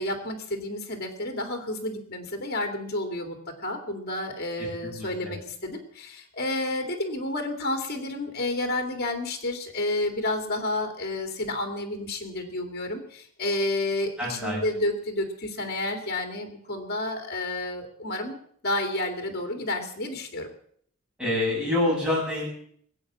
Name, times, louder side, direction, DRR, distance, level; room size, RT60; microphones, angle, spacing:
voice 1, 0.0-3.4 3.6-18.4 18.6-20.5, left 1 dB, 50° left, 5 dB, 2.6 m, -30 dB
voice 2, 4.6-5.3 14.2-14.6 21.2-22.5, left 2 dB, 5° right, -4 dB, 7.6 m, -27 dB
20.5 x 8.4 x 7.5 m, 0.64 s
head